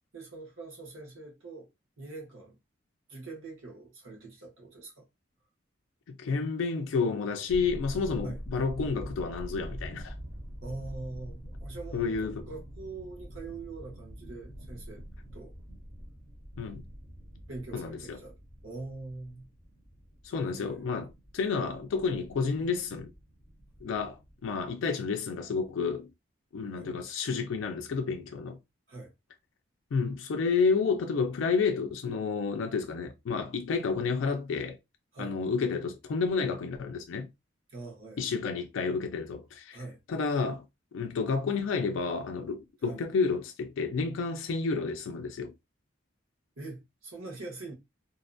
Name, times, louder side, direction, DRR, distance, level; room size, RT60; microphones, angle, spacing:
voice 1, 0.1-1.7 2.0-2.5 3.1-5.1 8.2-8.4 10.6-15.0 15.3-15.5 17.5-18.4 18.6-19.5 20.4-20.9 26.8-26.9 28.9-29.1 35.1-35.3 37.7-38.2 39.7-40.0 42.9-43.0 46.6-47.7, right 3 dB, 90° right, 1.1 m, -43 dB
voice 2, 6.1-10.1 11.9-12.4 16.6-16.8 17.7-18.2 20.2-21.1 21.3-23.1 23.8-26.1 26.5-28.6 29.9-34.8 35.2-37.3 38.2-39.8 40.1-40.7 40.9-45.5, left 5 dB, 75° left, 0.3 m, -30 dB
sound 1, 7.5-24.7, equal, 35° right, 0.9 m, -45 dB
2.7 x 2.2 x 2.5 m
head